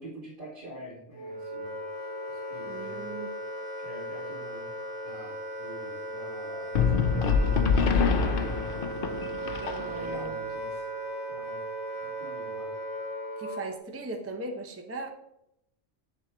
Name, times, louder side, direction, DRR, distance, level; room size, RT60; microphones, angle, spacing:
voice 1, 0.0-1.8 2.3-3.1 3.8-4.7 5.0-8.8 9.8-10.9 11.3-11.7 12.0-12.7, right 1 dB, 40° right, -10 dB, 2.4 m, -46 dB
Wind instrument woodwind instrument, 1.1-13.8, right 1 dB, 30° left, 1.5 m, -37 dB
voice 2, 2.7-3.3 9.6-10.4 13.4-15.1, right 2 dB, 15° right, 3 dB, 0.5 m, -38 dB
sound 1, 6.7-10.3, left 5 dB, 55° left, 0.7 m, -25 dB
6.8 x 3.2 x 5.9 m, 0.80 s
omnidirectional pair, 1.3 m